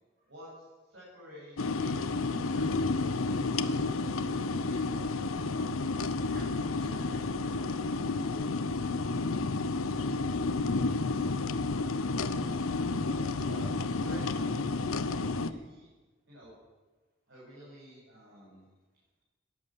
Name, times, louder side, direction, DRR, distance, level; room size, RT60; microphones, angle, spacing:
voice 1, 0.3-2.3 2.5-3.1 3.8-5.2 11.7-15.9 16.3-16.5 17.3-18.6, equal, 65° right, -8 dB, 7.3 m, -51 dB
sound 1, 1.6-15.5, left 3 dB, 90° left, 0.8 m, -31 dB
voice 2, 6.3-8.9 18.3-18.5, left 1 dB, 45° right, -3 dB, 7.0 m, -52 dB
17.5 x 11.0 x 7.4 m, 1.3 s
head